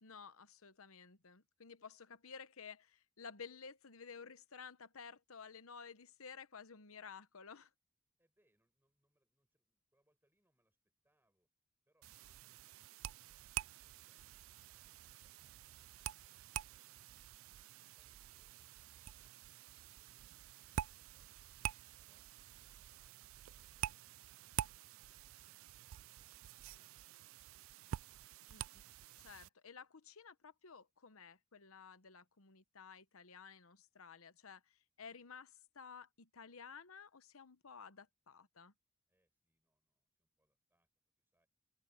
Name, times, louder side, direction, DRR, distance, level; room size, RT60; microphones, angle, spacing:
voice 1, 0.0-7.7 28.5-28.6 29.2-38.7, left 6 dB, 75° left, 1.0 m, -54 dB
voice 2, 8.2-11.5 11.8-12.7 18.0-22.3 39.1-40.9 41.2-41.5, right 1 dB, 10° right, 6.3 m, -85 dB
sound 1, 12.0-29.5, right 11 dB, 70° right, 0.3 m, -48 dB
head